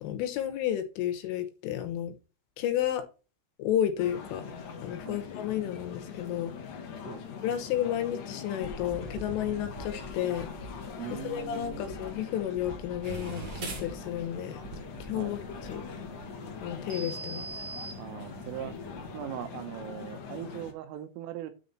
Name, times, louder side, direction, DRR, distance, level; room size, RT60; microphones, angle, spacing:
voice 1, 0.0-2.2 2.6-3.1 3.6-4.5 4.8-6.6 7.4-10.5 11.1-14.6 15.0-15.4 15.7-15.8 16.6-17.5, left 11 dB, 80° left, 8 dB, 3.5 m, -32 dB
sound 1, 4.0-20.7, left 6 dB, 65° left, 2.0 m, -42 dB
sound 2, 8.6-16.2, right 2 dB, 70° right, 3.3 m, -46 dB
voice 2, 11.0-11.9 15.2-15.3 18.0-18.8 19.1-21.5, right 12 dB, 90° right, 9 dB, 3.6 m, -40 dB
sound 3, 13.0-19.2, right 4 dB, 45° right, 3.1 m, -43 dB
9.8 x 4.2 x 5.9 m, 0.34 s
omnidirectional pair, 5.7 m